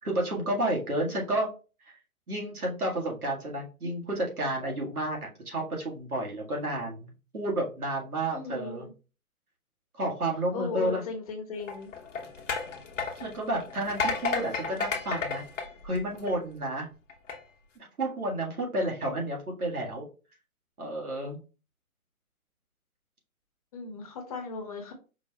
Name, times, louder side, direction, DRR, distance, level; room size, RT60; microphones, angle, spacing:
voice 1, 0.0-1.5 1.9-2.0 2.3-8.9 10.0-11.0 13.2-15.4 15.8-16.9 17.8-20.0 20.8-21.4, right 1 dB, 85° right, -1 dB, 1.8 m, -31 dB
voice 2, 8.3-8.9 10.5-11.9 23.7-24.9, left 4 dB, 25° left, 3 dB, 0.8 m, -36 dB
sound 1, 11.6-16.5 17.1-17.4, left 5 dB, 60° left, 0.9 m, -33 dB
4.9 x 2.3 x 3.0 m, 0.34 s
figure-of-eight pair, 140°, 43 cm